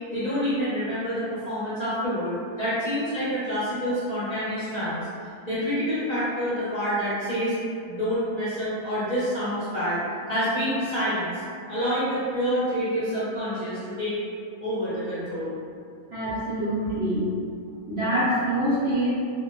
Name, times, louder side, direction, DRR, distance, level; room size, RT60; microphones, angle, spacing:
voice 1, 0.1-5.0 5.5-7.5 7.9-11.4 11.7-14.2 14.6-15.5, equal, 35° left, -14 dB, 0.7 m, -27 dB
voice 2, 16.1-17.2 17.9-19.1, right 1 dB, 55° right, -11 dB, 0.8 m, -25 dB
2.5 x 2.0 x 3.0 m, 2.3 s
omnidirectional pair, 1.5 m